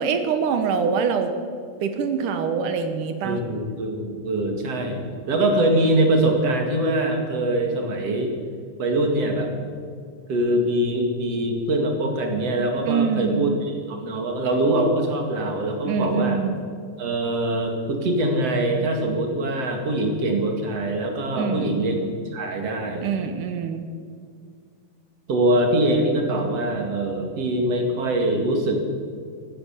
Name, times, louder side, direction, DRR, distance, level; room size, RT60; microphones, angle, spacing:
voice 1, 0.0-1.3 1.8-3.4 12.9-13.5 15.8-16.6 21.3-21.8 23.0-23.9, right 6 dB, 75° right, 8 dB, 2.6 m, -24 dB
voice 2, 3.2-8.3 8.8-9.5 10.3-16.4 17.0-22.0 22.3-23.1 25.3-28.8, right 1 dB, 50° right, 3 dB, 3.0 m, -23 dB
15.5 x 12.5 x 7.2 m, 2.2 s
omnidirectional pair, 3.8 m